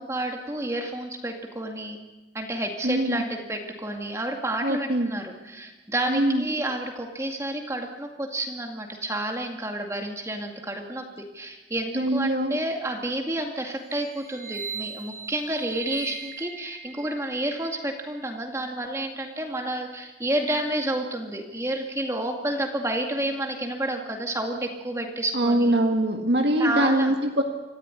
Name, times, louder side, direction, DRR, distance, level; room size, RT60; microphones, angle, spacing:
voice 1, 0.0-2.0 2.3-11.0 11.3-25.8 26.6-27.1, right 1 dB, 15° right, 2 dB, 2.1 m, -30 dB
voice 2, 2.8-3.2 4.6-5.1 6.1-6.4 11.9-12.6 25.3-27.4, right 1 dB, 75° right, 3 dB, 2.0 m, -23 dB
sound 1, 14.2-18.3, right 7 dB, 55° right, 2.8 m, -39 dB
25.5 x 15.0 x 9.7 m, 1.1 s
head